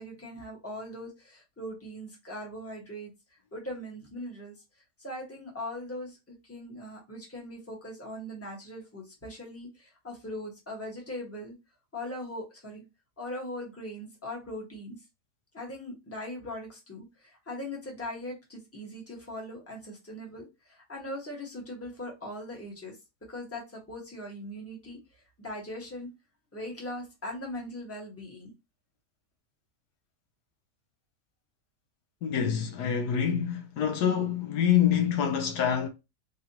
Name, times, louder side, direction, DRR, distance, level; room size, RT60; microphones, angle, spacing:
voice 1, 0.0-3.1 3.5-4.5 5.0-11.5 11.9-12.8 13.2-15.0 15.5-23.0 23.3-26.1 26.5-28.5, left 1 dB, 10° left, 1.3 m, -40 dB
voice 2, 32.2-35.9, left 8 dB, 75° left, 1.3 m, -26 dB
3.6 x 3.2 x 2.8 m
omnidirectional pair, 1.7 m